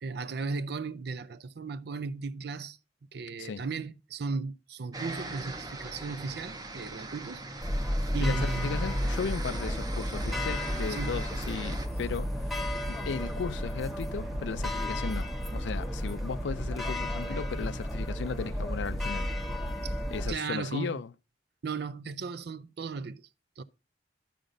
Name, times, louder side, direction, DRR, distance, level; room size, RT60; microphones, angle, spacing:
voice 1, 0.0-2.8 3.1-7.4 7.7-7.9 8.1-8.8 10.9-11.2 11.7-11.8 19.8-20.0 20.3-21.0 21.6-23.3 23.6-23.7, right 4 dB, 65° right, 0.5 m, -36 dB
sound 1, 4.9-11.9, right 2 dB, 20° right, 0.8 m, -40 dB
sound 2, 7.6-20.3, equal, ahead, 1.1 m, -32 dB
voice 2, 8.2-19.3 20.1-21.1, left 5 dB, 85° left, 0.4 m, -36 dB
14.5 x 5.0 x 2.6 m
head